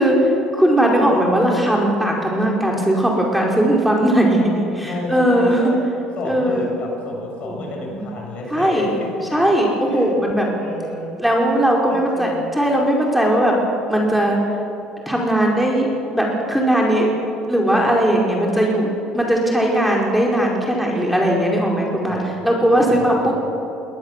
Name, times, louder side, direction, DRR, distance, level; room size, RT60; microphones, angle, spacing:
voice 1, 0.0-4.4 4.7-5.6 6.3-6.7 7.4-7.6 7.8-8.0 8.5-8.9 9.3-10.5 11.2-13.5 13.9-14.4 15.1-15.9 16.1-17.1 17.5-18.9 19.1-23.3, right 1 dB, ahead, -2 dB, 5.1 m, -18 dB
voice 2, 4.8-5.8 6.2-9.1 9.8-10.2 10.5-11.6 11.9-12.5 22.1-22.3 22.6-23.4, left 2 dB, 55° left, 0 dB, 7.4 m, -32 dB
20.0 x 20.0 x 7.6 m, 2.7 s
supercardioid pair, 75°, 3 cm